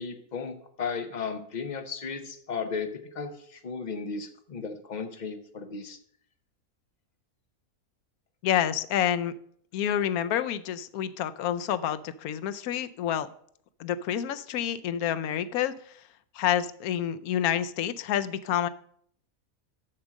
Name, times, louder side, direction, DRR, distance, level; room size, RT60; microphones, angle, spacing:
voice 1, 0.0-6.0, left 5 dB, 40° left, 7 dB, 0.8 m, -35 dB
voice 2, 8.4-9.3 9.7-13.3 13.8-15.7 16.3-18.7, left 10 dB, 85° left, 13 dB, 1.1 m, -28 dB
7.3 x 6.1 x 6.3 m, 0.64 s
omnidirectional pair, 1.5 m